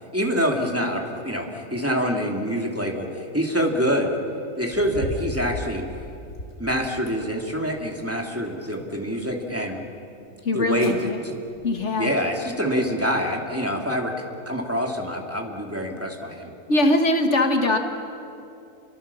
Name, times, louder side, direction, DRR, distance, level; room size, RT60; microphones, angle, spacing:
voice 1, 0.1-4.2 4.6-5.8 6.6-9.8 10.5-10.9 11.2-11.3 12.0-16.5, equal, 10° right, 0 dB, 2.5 m, -26 dB
sound 1, 4.6-6.6 7.1-7.9 8.3-9.1 9.6-9.7 10.4-10.5 10.7-11.0 11.5-11.8 12.2-12.3, left 1 dB, 85° left, 3.5 m, -36 dB
voice 2, 10.4-11.2 11.6-12.1 16.7-17.8, left 2 dB, 60° left, 5 dB, 1.8 m, -21 dB
29.0 x 23.0 x 7.0 m, 2.7 s
omnidirectional pair, 1.4 m